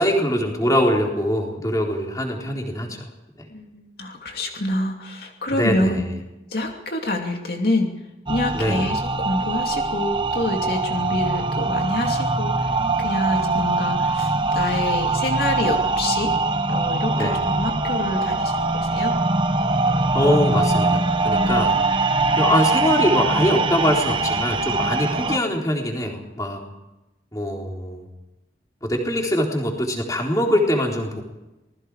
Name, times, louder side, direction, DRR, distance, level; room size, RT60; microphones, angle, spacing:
voice 1, 0.0-3.0 5.5-6.0 8.5-8.9 17.1-17.4 20.1-21.8 22.4-26.6 27.3-28.1 28.8-31.2, equal, 20° left, 0 dB, 4.0 m, -22 dB
voice 2, 3.5-6.1 6.5-7.9 8.3-16.4 16.7-19.2, left 1 dB, 55° left, 2 dB, 2.6 m, -27 dB
sound 1, 8.3-25.4, right 3 dB, 25° right, 1.0 m, -22 dB
27.5 x 20.5 x 4.9 m, 0.99 s
head